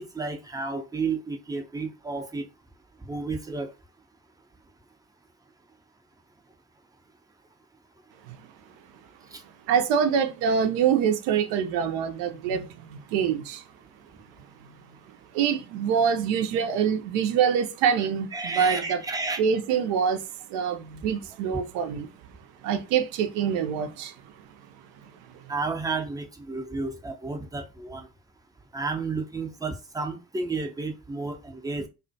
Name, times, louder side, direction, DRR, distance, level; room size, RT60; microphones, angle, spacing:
voice 1, 0.0-2.5 3.1-3.7 9.3-9.4 16.6-16.7 18.3-19.4 25.5-28.1 28.7-31.9, right 3 dB, 10° right, 0.5 m, -32 dB
voice 2, 9.7-13.6 15.3-19.0 19.4-20.2 20.5-22.1 22.6-24.1, right 7 dB, 65° right, 0.6 m, -25 dB
2.4 x 2.1 x 2.6 m
hypercardioid pair, 50°, 47 cm